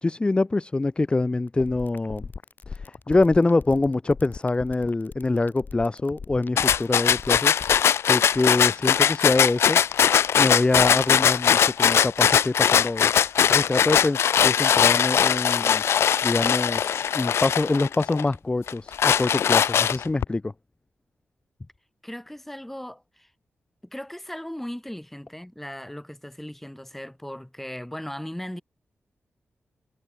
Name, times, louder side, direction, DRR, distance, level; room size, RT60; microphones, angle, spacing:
voice 1, 0.0-2.3 2.7-9.8 10.3-13.2 13.5-15.8 16.2-20.5, left 2 dB, 25° left, 1.0 m, -25 dB
sound 1, 1.5-7.8, left 5 dB, 45° left, 1.7 m, -39 dB
sound 2, 6.6-18.2 18.7-20.2, left 8 dB, 80° left, 0.3 m, -20 dB
Crackle, 10.6-18.7 19.0-19.1 19.5-20.2, right 2 dB, 25° right, 5.9 m, -55 dB
voice 2, 22.0-23.3 23.8-28.6, left 1 dB, 5° left, 3.7 m, -37 dB
wide cardioid pair, 110°, 4 cm